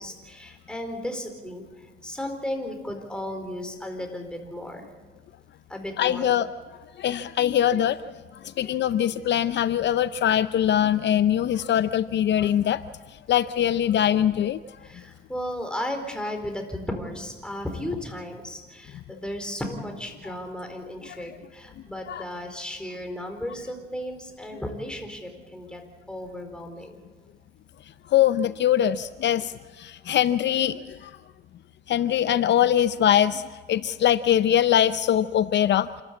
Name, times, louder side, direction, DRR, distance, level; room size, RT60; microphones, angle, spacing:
voice 1, 0.0-4.9 5.7-6.3 14.8-25.8 26.1-27.0, left 1 dB, 5° left, 4 dB, 4.3 m, -35 dB
voice 2, 6.0-6.5 7.0-8.0 8.6-12.8 13.3-14.6 21.1-21.2 22.1-22.2 28.1-31.1 31.9-33.4 33.7-35.9, left 10 dB, 65° left, 13 dB, 0.6 m, -22 dB
28.0 x 13.0 x 8.4 m, 1.3 s
cardioid pair, 90°, 20 cm